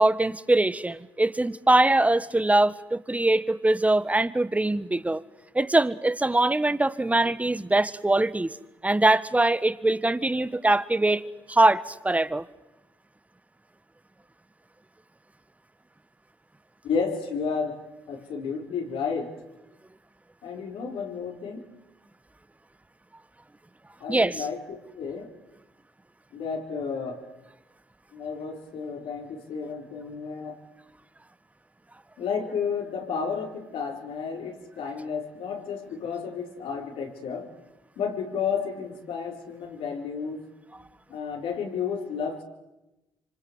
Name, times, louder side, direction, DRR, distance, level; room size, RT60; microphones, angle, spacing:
voice 1, 0.0-5.2 5.5-8.5 8.8-11.2 11.5-12.4 24.1-24.4, right 2 dB, 15° right, 1.4 m, -22 dB
voice 2, 16.8-17.8 18.1-19.3 20.4-21.7 24.0-25.3 26.3-27.2 28.1-30.6 32.2-37.5 38.0-40.5 41.1-42.4, left 6 dB, 75° left, 4.4 m, -32 dB
26.0 x 25.5 x 8.1 m
supercardioid pair, 55°, 9 cm